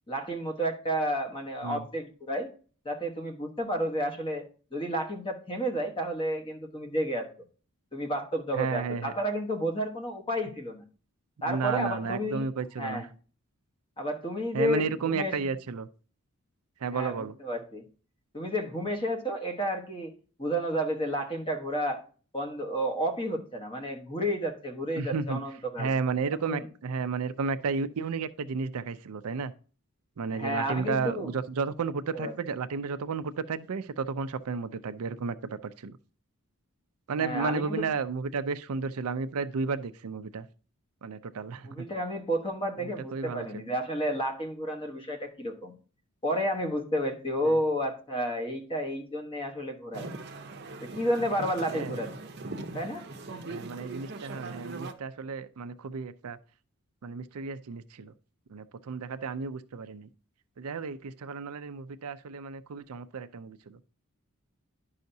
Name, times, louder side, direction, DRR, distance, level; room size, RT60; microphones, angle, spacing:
voice 1, 0.1-2.5 2.8-7.3 7.9-10.8 11.4-12.4 12.8-13.1 14.0-15.3 16.9-17.8 18.3-20.1 20.4-22.0 22.3-25.9 26.4-26.7 30.3-31.3 32.1-32.3 37.2-37.8 41.6-45.8 46.2-50.1 50.8-52.1 52.7-53.0, equal, 25° left, 1.1 m, -31 dB
voice 2, 8.5-9.1 11.4-13.1 14.5-15.9 16.8-17.3 25.0-25.4 25.8-29.5 30.2-36.0 37.1-40.5 41.0-41.9 42.8-43.6 47.4-47.6 51.7-52.0 53.5-56.4 57.0-58.1 58.5-60.1 60.6-63.8, right 5 dB, 85° right, 0.5 m, -33 dB
sound 1, 49.9-54.9, right 3 dB, 50° right, 0.7 m, -40 dB
10.5 x 5.6 x 2.7 m
head